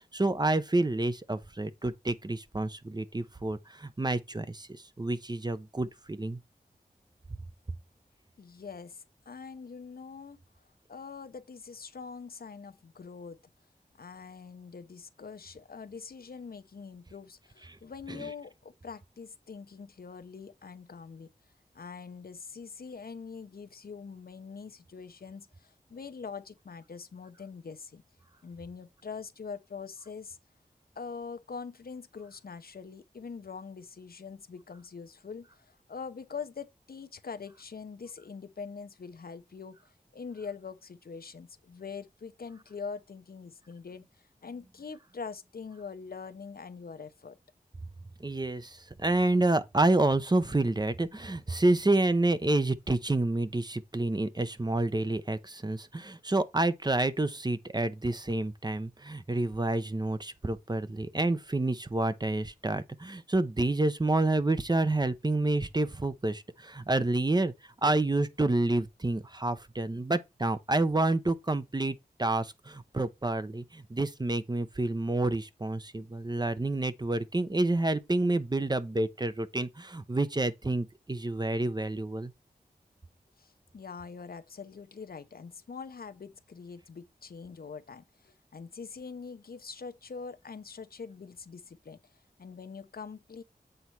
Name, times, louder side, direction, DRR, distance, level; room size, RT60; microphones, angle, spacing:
voice 1, 0.0-4.7 5.0-6.4 18.1-18.3 48.2-67.5 67.8-82.3, right 2 dB, 25° right, 0.7 m, -29 dB
voice 2, 8.4-10.4 10.9-13.4 14.0-21.3 21.7-28.0 28.4-30.4 31.0-39.8 40.1-44.1 44.4-47.4 83.4-92.0 92.4-93.4, left 5 dB, 70° left, 0.7 m, -43 dB
7.9 x 4.0 x 4.6 m
wide cardioid pair, 60°, 16 cm